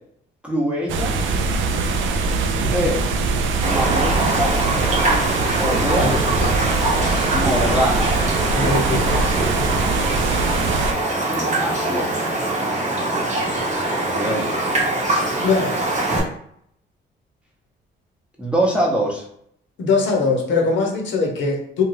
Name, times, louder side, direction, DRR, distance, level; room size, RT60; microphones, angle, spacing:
voice 1, 0.4-1.2 2.7-3.0 3.6-4.5 5.6-6.1 7.3-8.1 10.9-12.1 14.1-14.6 18.4-19.3, right 1 dB, 5° right, -3 dB, 0.7 m, -24 dB
sound 1, 0.9-10.9, right 4 dB, 75° right, 0.4 m, -22 dB
Raindrop, 3.6-16.2, right 2 dB, 35° right, 0.9 m, -23 dB
voice 2, 6.0-6.7 8.5-9.3 15.4-15.8 19.8-21.8, left 3 dB, 70° left, 0 dB, 0.7 m, -22 dB
2.5 x 2.3 x 3.1 m, 0.68 s
cardioid pair, 90°, 20 cm